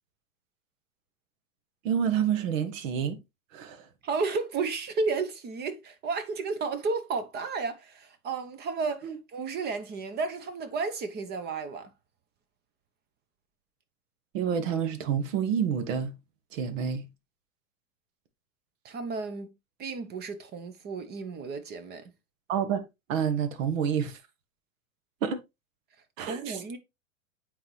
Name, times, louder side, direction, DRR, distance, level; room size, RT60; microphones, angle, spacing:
voice 1, 1.8-3.2 3.5-3.8 9.0-9.1 14.3-16.1 16.5-17.1 22.5-24.2 25.2-25.4 26.2-26.8, right 8 dB, 60° right, 1.4 m, -28 dB
voice 2, 4.0-11.9 18.8-19.5 19.8-22.0 26.2-26.8, right 4 dB, 20° right, 0.8 m, -32 dB
8.6 x 4.1 x 3.1 m
hypercardioid pair, 135°, 44 cm